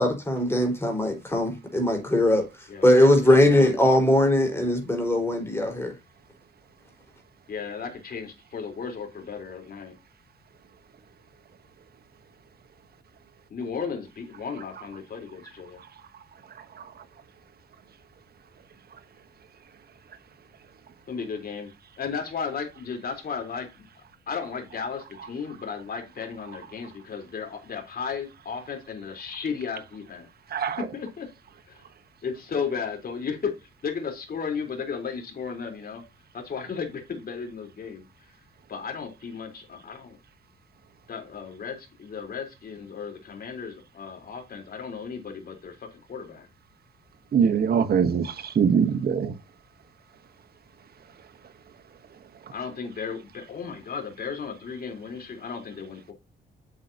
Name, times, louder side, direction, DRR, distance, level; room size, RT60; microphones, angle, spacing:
voice 1, 0.0-2.4 2.8-5.9, left 1 dB, 10° left, 4.6 m, -20 dB
voice 2, 3.2-3.8 7.5-9.9 13.5-15.8 21.1-21.7 22.0-23.8 24.3-30.3 30.8-31.3 31.7-31.8 32.2-33.5 33.8-36.0 36.3-38.0 38.7-40.2 41.1-46.5 52.5-56.1, left 6 dB, 50° left, 3.8 m, -34 dB
voice 3, 47.3-49.3, right 7 dB, 50° right, 1.1 m, -22 dB
8.3 x 7.8 x 2.8 m
cardioid pair, 90°, 20 cm